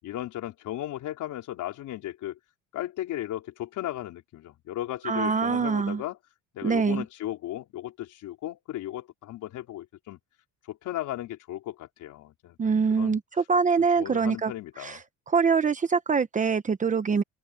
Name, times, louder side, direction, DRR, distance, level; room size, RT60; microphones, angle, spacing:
voice 1, 0.0-2.4 2.7-6.2 6.5-10.2 10.7-13.2 13.8-15.0, left 13 dB, 65° left, 4.5 m, -36 dB
voice 2, 5.0-6.0 6.6-7.0 12.6-14.5 14.8-15.0 15.3-17.2, right 5 dB, 25° right, 1.0 m, -24 dB
cardioid pair, 145°, 33 cm